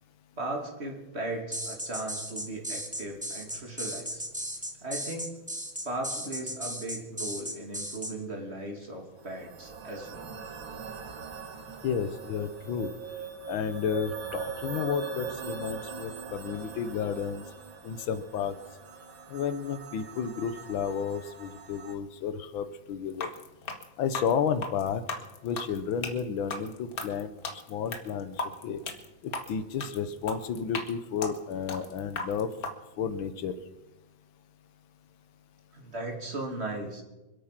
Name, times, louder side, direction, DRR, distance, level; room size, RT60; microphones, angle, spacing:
voice 1, 0.4-4.2 4.8-5.3 5.8-10.3 35.7-37.0, right 2 dB, 30° right, 2 dB, 3.0 m, -37 dB
sound 1, 1.5-8.1, equal, 5° right, 1.3 m, -36 dB
sound 2, 9.2-22.0, right 5 dB, 70° right, 2.3 m, -41 dB
voice 2, 11.8-12.9 13.5-17.4 17.8-18.6 19.3-23.3 24.0-25.0 25.4-27.3 27.7-28.4 28.6-28.8 29.2-32.5 33.0-33.6, left 7 dB, 80° left, 11 dB, 1.8 m, -32 dB
sound 3, 23.1-32.7, left 3 dB, 50° left, 1.8 m, -37 dB
26.0 x 8.8 x 5.9 m, 1.1 s
omnidirectional pair, 2.2 m